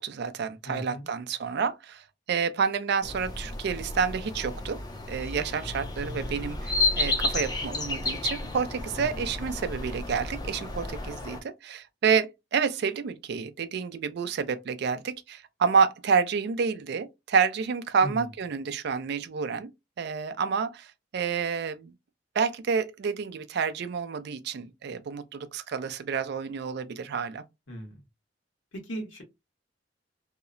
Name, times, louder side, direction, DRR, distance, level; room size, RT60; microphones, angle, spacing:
voice 1, 0.0-4.8 5.1-19.7 20.0-20.9 21.1-21.9 22.4-27.4, right 6 dB, 60° right, 0.4 m, -29 dB
voice 2, 0.7-1.1 8.9-9.2 18.0-18.2 27.7-28.0 28.7-29.2, equal, 80° left, 1.1 m, -37 dB
sound 1, 3.0-11.4, left 2 dB, 20° left, 0.4 m, -32 dB
2.7 x 2.0 x 2.5 m
head